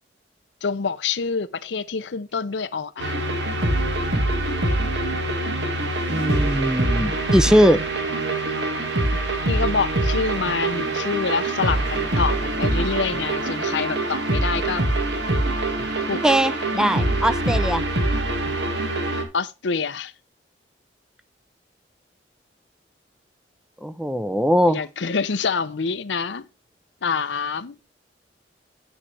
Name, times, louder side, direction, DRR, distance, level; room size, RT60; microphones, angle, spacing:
voice 1, 0.6-3.2 9.5-14.8 16.1-16.2 19.3-20.1 24.7-26.5 27.0-27.8, left 5 dB, 80° left, 0.7 m, -26 dB
sound 1, 3.0-19.2, right 2 dB, 70° right, 1.8 m, -24 dB
voice 2, 6.1-7.8 16.2-17.9 23.8-24.8, equal, 5° right, 0.5 m, -20 dB
10.0 x 7.4 x 3.3 m
head